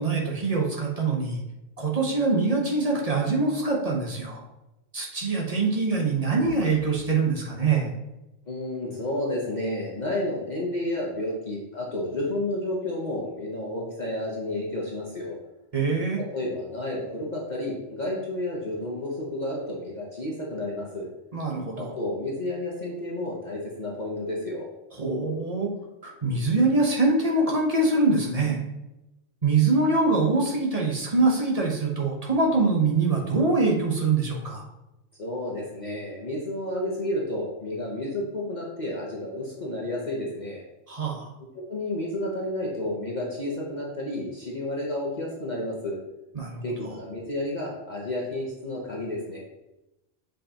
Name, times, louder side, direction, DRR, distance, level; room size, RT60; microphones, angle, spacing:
voice 1, 0.0-1.4 1.8-4.4 4.9-7.9 15.7-16.2 21.3-21.9 24.9-25.7 26.0-28.6 29.4-34.6 40.9-41.2 46.3-46.9, right 3 dB, 30° right, -1 dB, 1.1 m, -24 dB
voice 2, 8.5-15.3 16.2-21.1 21.7-24.7 35.2-40.6 41.5-46.0 46.6-49.4, left 1 dB, 35° left, -4 dB, 1.1 m, -31 dB
7.6 x 5.2 x 2.9 m, 0.96 s
omnidirectional pair, 1.4 m